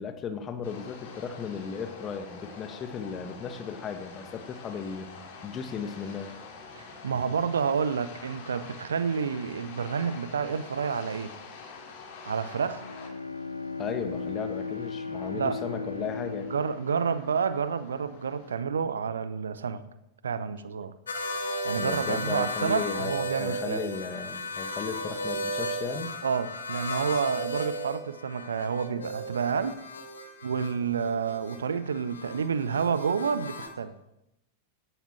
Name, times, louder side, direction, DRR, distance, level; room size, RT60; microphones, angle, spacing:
voice 1, 0.0-5.1 5.4-6.3 13.8-16.5 21.8-26.1, left 6 dB, 25° left, 7 dB, 1.8 m, -36 dB
sound 1, 0.6-18.5, left 4 dB, 55° left, 3.8 m, -47 dB
voice 2, 6.8-11.3 12.2-12.8 15.3-15.6 16.5-19.8 20.2-20.9 21.6-23.8 26.2-29.8 30.4-33.9, right 6 dB, 70° right, 14 dB, 0.8 m, -29 dB
Bowed string instrument, 12.7-18.2, left 4 dB, 90° left, 0.6 m, -37 dB
sound 2, 21.1-33.7, equal, 70° left, 1.9 m, -35 dB
16.5 x 11.0 x 4.7 m, 0.89 s
figure-of-eight pair, 90°, 0 cm